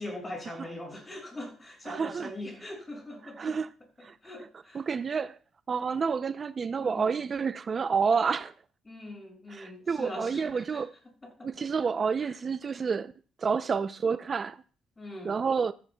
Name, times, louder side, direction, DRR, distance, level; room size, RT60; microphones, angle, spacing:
voice 1, 0.0-3.6 4.0-4.9 6.8-7.2 8.8-10.8 11.2-11.7 12.2-12.3 15.0-15.4, left 1 dB, 25° left, 6.8 m, -42 dB
voice 2, 1.9-2.3 3.4-3.7 4.0-4.1 4.7-5.4 5.7-8.5 9.5-10.9 11.4-13.1 13.4-14.6 15.2-15.7, right 5 dB, 40° right, 0.5 m, -29 dB
15.0 x 14.0 x 2.3 m
cardioid pair, 90°, 0 cm